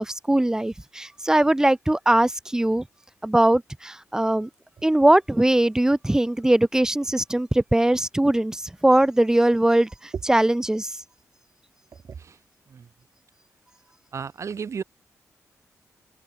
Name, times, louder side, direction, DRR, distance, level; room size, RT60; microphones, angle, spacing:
voice 1, 0.0-2.9 3.2-4.5 4.8-11.0, right 1 dB, 10° right, 1.4 m, -21 dB
voice 2, 14.1-14.8, right 6 dB, 55° right, 2.5 m, -33 dB
cardioid pair, 95°, 6 cm